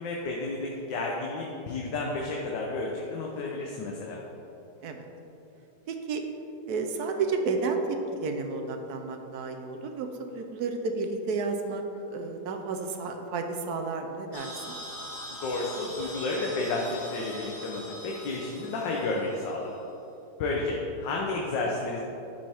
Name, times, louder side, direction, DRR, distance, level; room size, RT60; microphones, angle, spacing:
voice 1, 0.0-4.2 15.4-19.7 20.4-22.0, left 2 dB, 80° left, -2 dB, 1.5 m, -31 dB
voice 2, 5.9-6.2 6.7-10.1 10.3-11.8 12.1-14.7, right 4 dB, 65° right, 5 dB, 1.1 m, -31 dB
sound 1, 14.3-19.6, equal, 45° left, 1.7 m, -42 dB
12.0 x 5.4 x 3.5 m, 2.9 s
omnidirectional pair, 2.0 m